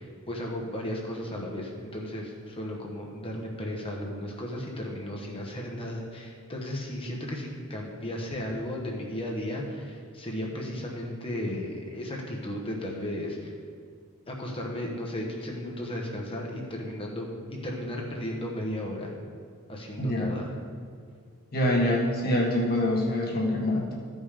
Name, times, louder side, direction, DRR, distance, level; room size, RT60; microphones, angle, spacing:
voice 1, 0.0-13.5 14.3-19.2 19.7-20.5, left 1 dB, 25° left, -1 dB, 1.1 m, -35 dB
voice 2, 20.0-20.3 21.5-23.9, left 1 dB, 45° left, -2 dB, 1.5 m, -25 dB
13.5 x 5.4 x 5.0 m, 2.2 s
head